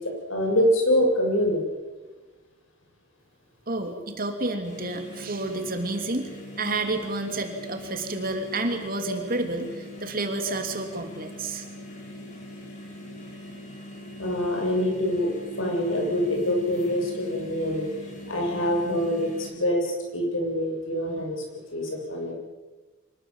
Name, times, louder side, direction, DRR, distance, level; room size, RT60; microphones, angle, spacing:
voice 1, 0.3-1.6 14.2-17.9 18.3-21.4 21.7-22.3, equal, 80° left, 1 dB, 7.4 m, -25 dB
voice 2, 3.7-6.3 6.6-11.6, right 2 dB, 45° right, 5 dB, 3.0 m, -30 dB
Fan Sound, 4.6-19.5, left 1 dB, 40° left, 5.7 m, -42 dB
25.0 x 21.0 x 7.4 m, 1.3 s
head